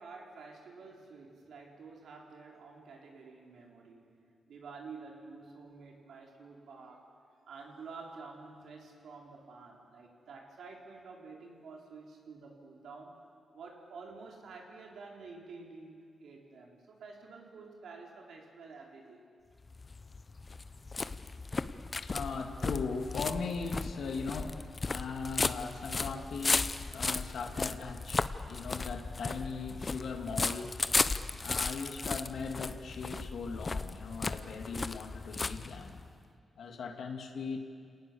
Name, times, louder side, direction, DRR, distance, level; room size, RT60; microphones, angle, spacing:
voice 1, 0.0-4.0 4.5-7.1 7.5-13.1 13.5-19.2, right 4 dB, 90° right, 0 dB, 4.0 m, -49 dB
sound 1, 19.6-36.1, left 3 dB, 35° left, 0.8 m, -35 dB
voice 2, 21.7-31.2 31.4-36.0 36.6-37.6, left 5 dB, 80° left, 5 dB, 2.3 m, -39 dB
30.0 x 18.5 x 7.1 m, 2.3 s
cardioid pair, 95°, 0 cm